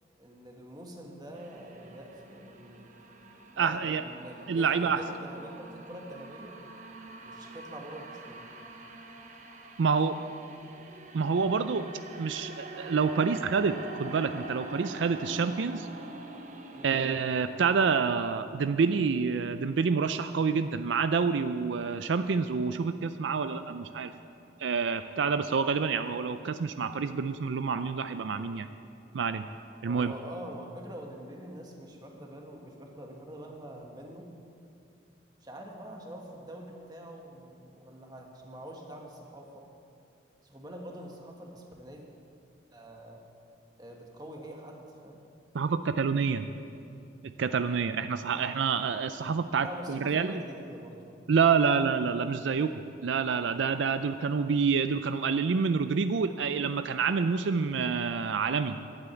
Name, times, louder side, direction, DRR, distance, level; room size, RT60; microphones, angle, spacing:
voice 1, 0.2-2.9 3.5-6.6 7.2-8.5 16.7-17.0 29.8-34.3 35.4-39.7 40.4-42.0 42.7-43.2 43.8-45.2 49.6-51.1, right 1 dB, 20° right, 0 dB, 1.5 m, -45 dB
sound 1, 1.3-17.5, right 2 dB, 40° right, 1.0 m, -45 dB
voice 2, 3.6-4.0 4.5-5.0 9.8-10.2 11.1-11.9 12.2-15.9 16.8-24.1 24.6-28.7 29.1-29.4 29.8-30.1 45.5-46.5 47.4-50.4 51.3-58.8, right 5 dB, 75° right, 10 dB, 0.4 m, -27 dB
11.5 x 8.9 x 8.3 m, 2.6 s
head